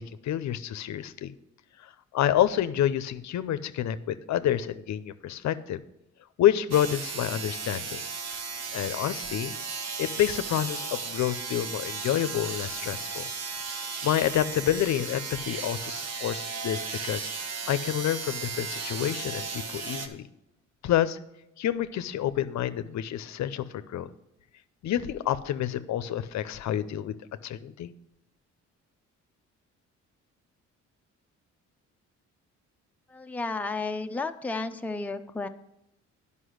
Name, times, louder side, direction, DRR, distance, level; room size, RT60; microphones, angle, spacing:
voice 1, 0.0-1.3 1.8-5.8 6.4-8.0 8.7-9.6 10.0-13.3 13.7-20.3 20.8-21.2 21.6-24.1 24.8-27.2 27.4-27.9, left 11 dB, 65° left, 13 dB, 0.6 m, -28 dB
sound 1, 6.7-20.1, right 5 dB, 55° right, 1.1 m, -35 dB
voice 2, 33.1-35.5, left 3 dB, 5° left, 6 dB, 0.5 m, -32 dB
9.9 x 5.5 x 6.3 m, 0.87 s
cardioid pair, 90°, 30 cm